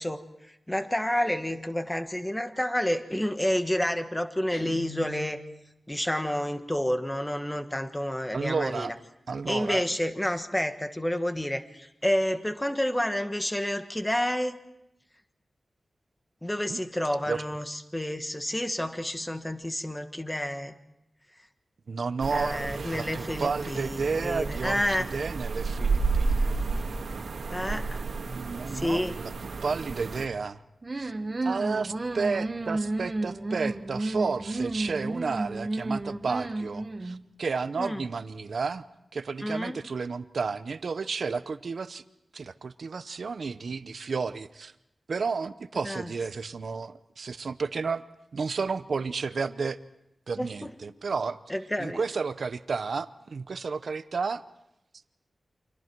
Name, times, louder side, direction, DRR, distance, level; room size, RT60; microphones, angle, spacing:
voice 1, 0.0-5.4 5.9-8.9 9.5-14.6 16.4-20.8 22.3-25.1 27.5-27.9 28.7-29.2 37.8-38.0 39.4-39.8 45.8-46.1 50.4-50.7 51.5-52.0, left 1 dB, 10° left, 8 dB, 1.4 m, -29 dB
Guitar, 4.5-5.7, left 4 dB, 75° left, 2.4 m, -42 dB
voice 2, 8.3-8.9 9.3-9.9 16.7-16.8 17.3-17.4 21.9-26.6 28.3-29.3 29.6-30.6 30.9-31.1 31.4-38.8 39.1-42.0 42.3-44.7 45.1-48.0 48.3-49.8 50.3-51.4 51.8-54.4, right 4 dB, 65° right, 13 dB, 0.8 m, -32 dB
sound 1, 22.2-30.3, right 4 dB, 85° right, 1.8 m, -31 dB
sound 2, 30.8-37.2, right 2 dB, 30° right, 1.3 m, -32 dB
29.5 x 26.0 x 4.7 m, 0.86 s
wide cardioid pair, 120°, 0 cm